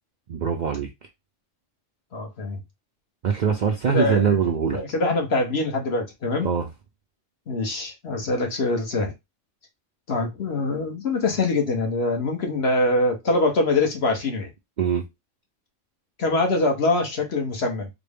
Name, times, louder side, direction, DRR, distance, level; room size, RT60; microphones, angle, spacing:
voice 1, 0.3-0.9 3.2-4.8 6.4-6.7 14.8-15.0, right 7 dB, 55° right, 0.5 m, -23 dB
voice 2, 2.1-2.6 3.9-4.4 4.7-6.5 7.5-9.1 10.1-14.5 16.2-17.9, left 2 dB, 60° left, 1.1 m, -24 dB
4.0 x 2.0 x 3.4 m
omnidirectional pair, 1.3 m